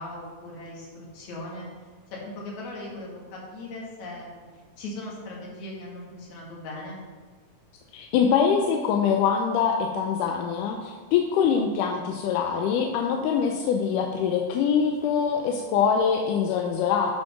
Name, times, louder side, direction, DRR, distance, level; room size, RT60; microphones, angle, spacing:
voice 1, 0.0-1.7 2.1-4.4 4.8-7.0, left 1 dB, 65° left, -3 dB, 3.2 m, -38 dB
voice 2, 7.9-17.2, left 7 dB, 85° left, 3 dB, 2.2 m, -24 dB
9.3 x 5.3 x 5.9 m, 1.5 s
omnidirectional pair, 3.6 m